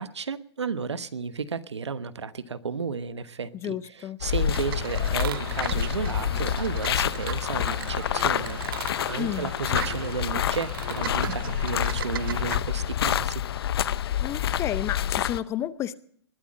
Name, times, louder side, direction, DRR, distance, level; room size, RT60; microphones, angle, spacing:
voice 1, 0.0-13.4, right 5 dB, 90° right, 14 dB, 1.1 m, -33 dB
voice 2, 3.6-4.2 9.1-9.5 14.2-15.9, left 11 dB, 20° left, 18 dB, 0.6 m, -31 dB
sound 1, 4.2-15.4, left 10 dB, 60° left, 0.7 m, -28 dB
sound 2, 4.2-11.9, left 10 dB, 45° left, 1.8 m, -50 dB
sound 3, 4.5-12.6, right 12 dB, 55° right, 0.7 m, -38 dB
20.5 x 8.7 x 7.5 m, 0.62 s
hypercardioid pair, 135°, 14 cm